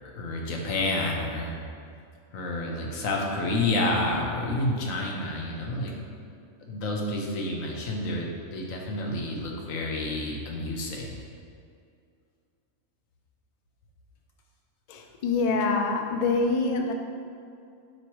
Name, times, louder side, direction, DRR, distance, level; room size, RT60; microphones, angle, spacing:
voice 1, 0.0-1.5 2.3-5.9 6.6-11.2, left 2 dB, 90° left, 0 dB, 1.3 m, -29 dB
voice 2, 14.9-16.9, left 3 dB, 65° left, 3 dB, 0.4 m, -25 dB
7.5 x 3.0 x 4.6 m, 2.3 s
omnidirectional pair, 1.4 m